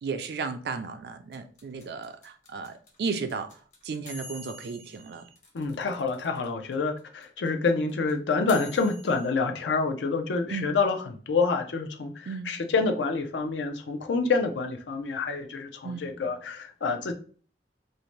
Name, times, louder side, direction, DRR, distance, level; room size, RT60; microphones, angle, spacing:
voice 1, 0.0-5.2 10.5-10.7 12.3-12.5 15.8-16.1, right 5 dB, 60° right, 8 dB, 0.4 m, -34 dB
sound 1, 1.3-6.4 6.7-6.8 7.0-9.3, left 3 dB, 45° left, 0.7 m, -46 dB
voice 2, 5.5-17.1, left 4 dB, 85° left, 5 dB, 0.5 m, -27 dB
2.6 x 2.1 x 3.0 m, 0.42 s
head